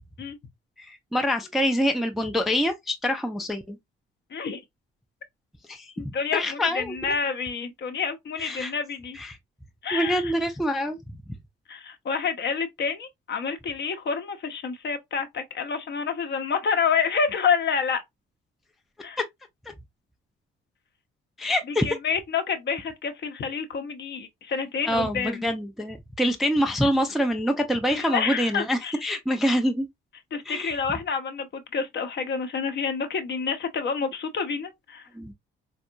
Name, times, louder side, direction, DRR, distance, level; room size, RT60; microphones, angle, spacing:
voice 1, 0.8-3.8 5.7-5.9 6.3-7.0 8.4-8.7 9.1-9.4 9.9-11.0 19.2-19.3 21.4-22.0 24.9-29.9 30.5-30.8 35.1-35.3, equal, ahead, 0.5 m, -25 dB
voice 2, 4.3-4.6 6.0-9.2 9.8-10.3 11.7-18.0 19.0-19.2 21.8-25.5 27.9-29.0 30.3-35.1, left 6 dB, 35° left, 0.7 m, -28 dB
4.2 x 2.0 x 2.5 m
figure-of-eight pair, 45°, 30 cm